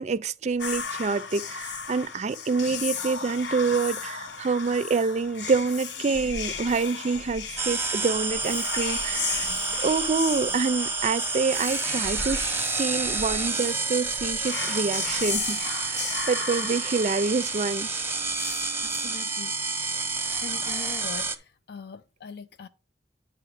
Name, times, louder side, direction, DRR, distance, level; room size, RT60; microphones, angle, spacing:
voice 1, 0.0-9.5 9.8-12.5 12.8-15.6 15.8-17.9, right 4 dB, 40° right, 0.4 m, -27 dB
Whispering, 0.6-17.7, left 6 dB, 85° left, 1.0 m, -35 dB
sound 1, 7.6-21.4, right 4 dB, 15° right, 0.7 m, -29 dB
voice 2, 18.3-19.5 20.4-22.7, left 5 dB, 60° left, 0.4 m, -42 dB
9.6 x 3.9 x 4.8 m
head